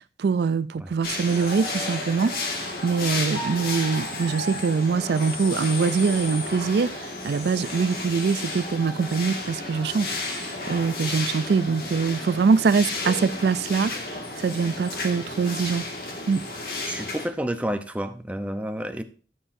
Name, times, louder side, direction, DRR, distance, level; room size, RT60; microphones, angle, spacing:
voice 1, 0.2-13.9 14.4-15.9 16.3-16.4, right 5 dB, 70° right, 0.4 m, -24 dB
sound 1, 1.0-17.3, left 2 dB, 55° left, 1.9 m, -32 dB
voice 2, 16.8-19.0, equal, 10° right, 0.7 m, -30 dB
14.5 x 7.7 x 2.6 m
head